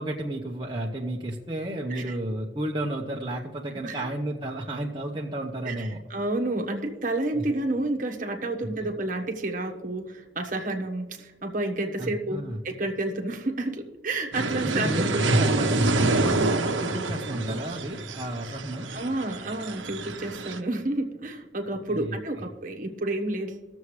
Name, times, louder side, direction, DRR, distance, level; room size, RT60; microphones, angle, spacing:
voice 1, 0.0-6.0 8.8-8.9 12.0-12.6 14.6-18.9 21.9-22.2, right 1 dB, 25° right, -2 dB, 0.8 m, -32 dB
voice 2, 5.6-15.0 15.4-15.6 18.9-23.7, right 2 dB, 45° right, 4 dB, 1.2 m, -30 dB
sound 1, 14.3-20.6, right 2 dB, 90° right, 0.9 m, -27 dB
19.5 x 7.1 x 3.2 m, 1.3 s
head